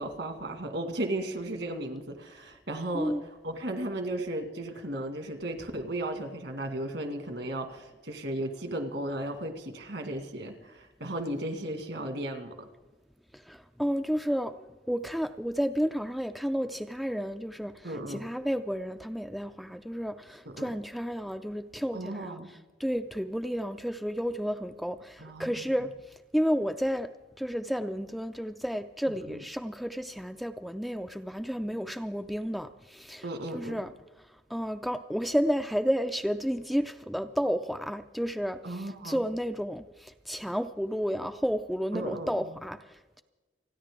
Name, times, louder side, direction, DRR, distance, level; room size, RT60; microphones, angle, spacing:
voice 1, 0.0-3.1 3.4-12.7 17.8-18.2 20.5-20.7 21.9-22.5 25.2-25.6 29.1-29.4 33.2-33.8 38.6-39.2 41.9-42.5, right 1 dB, 65° right, 6 dB, 2.0 m, -35 dB
voice 2, 13.3-14.6 14.9-22.4 22.8-27.1 27.4-33.2 33.5-33.9 34.5-43.2, equal, ahead, 8 dB, 0.4 m, -31 dB
29.5 x 10.0 x 3.7 m, 1.2 s
head